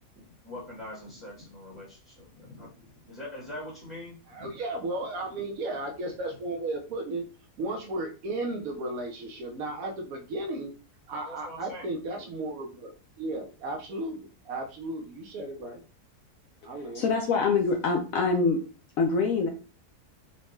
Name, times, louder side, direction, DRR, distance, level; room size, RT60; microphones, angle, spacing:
voice 1, 0.4-2.7 3.0-4.5 11.3-11.9, left 1 dB, 10° left, -6 dB, 1.1 m, -43 dB
voice 2, 4.3-7.2 7.6-10.7 11.1-15.8 16.6-17.1, right 2 dB, 70° right, 2 dB, 1.1 m, -34 dB
voice 3, 16.9-18.6 19.0-19.5, left 4 dB, 70° left, 2 dB, 0.9 m, -24 dB
4.2 x 2.2 x 3.0 m, 0.35 s
omnidirectional pair, 1.7 m